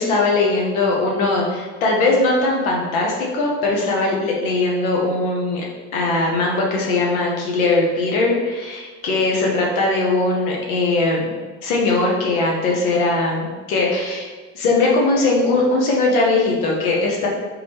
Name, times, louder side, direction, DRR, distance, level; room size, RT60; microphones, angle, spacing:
voice 1, 0.0-5.6 5.9-11.2 11.6-14.3 14.5-17.3, left 3 dB, 90° left, -2 dB, 0.9 m, -20 dB
3.9 x 3.3 x 2.9 m, 1.4 s
hypercardioid pair, 60°, 41 cm